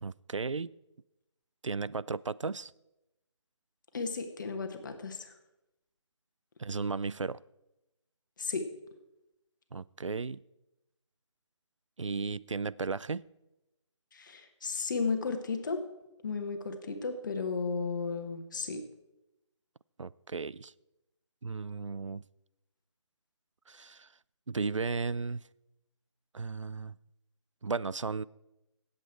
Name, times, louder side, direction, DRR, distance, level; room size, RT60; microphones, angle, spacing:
voice 1, 0.0-0.7 1.6-2.7 6.6-7.4 9.7-10.4 12.0-13.2 20.0-20.7 21.4-22.2 23.7-24.1 24.5-25.4 26.3-27.0 27.6-28.2, right 4 dB, 85° right, 20 dB, 0.4 m, -35 dB
voice 2, 3.9-5.3 8.4-8.7 14.1-15.8 16.2-18.8, left 4 dB, 40° left, 7 dB, 1.4 m, -34 dB
16.5 x 8.0 x 4.5 m, 0.94 s
figure-of-eight pair, 150°, 16 cm